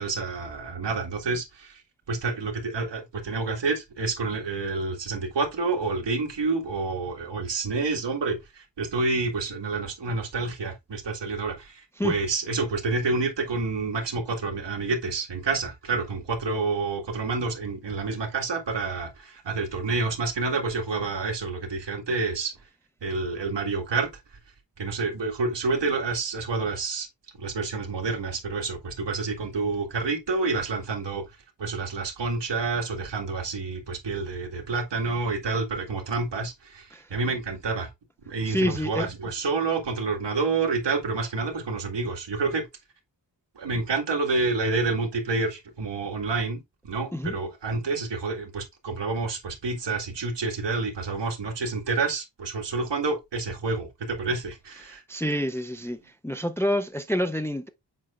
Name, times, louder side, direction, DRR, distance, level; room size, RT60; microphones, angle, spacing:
voice 1, 0.0-1.8 2.1-22.5 23.0-24.1 24.8-27.1 27.4-31.2 31.6-37.9 38.3-42.7 43.6-55.0, right 3 dB, 70° right, 1.8 m, -28 dB
voice 2, 38.5-39.1 47.1-47.4 55.1-56.0 56.2-57.7, equal, 5° left, 0.4 m, -27 dB
7.7 x 5.3 x 2.4 m
wide cardioid pair, 120°, 44 cm